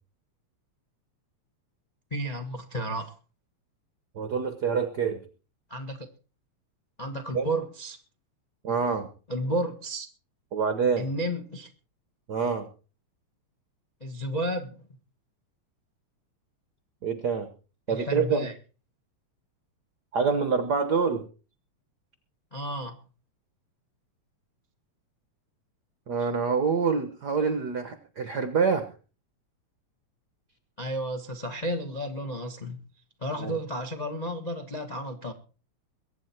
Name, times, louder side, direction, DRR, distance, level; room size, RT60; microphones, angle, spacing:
voice 1, 2.1-3.1 5.7-6.1 7.0-8.0 9.3-10.1 11.0-11.7 14.0-14.8 17.9-18.5 22.5-23.0 26.2-26.3 30.8-32.8 33.2-35.3, equal, 25° left, 0.9 m, -32 dB
voice 2, 4.1-5.2 7.3-7.5 8.6-9.1 10.5-11.1 12.3-12.7 17.0-17.5 17.9-18.5 20.1-21.3 26.1-28.9 33.4-33.5, right 5 dB, 55° right, 1.2 m, -26 dB
22.5 x 9.4 x 4.5 m
omnidirectional pair, 3.3 m